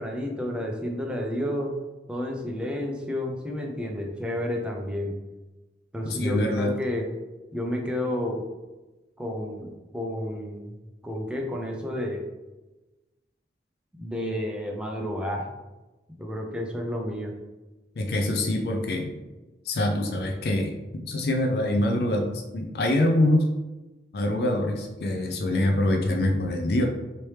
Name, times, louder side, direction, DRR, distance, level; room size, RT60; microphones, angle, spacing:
voice 1, 0.0-1.7 2.1-5.2 5.9-7.1 7.5-8.4 9.2-10.8 11.0-12.2 14.0-15.5 16.2-17.3, left 1 dB, 5° right, 0 dB, 0.4 m, -31 dB
voice 2, 6.0-6.7 18.0-19.1 19.7-23.4 24.1-26.9, left 1 dB, 60° left, 3 dB, 0.4 m, -25 dB
3.1 x 2.8 x 3.2 m, 1.1 s
head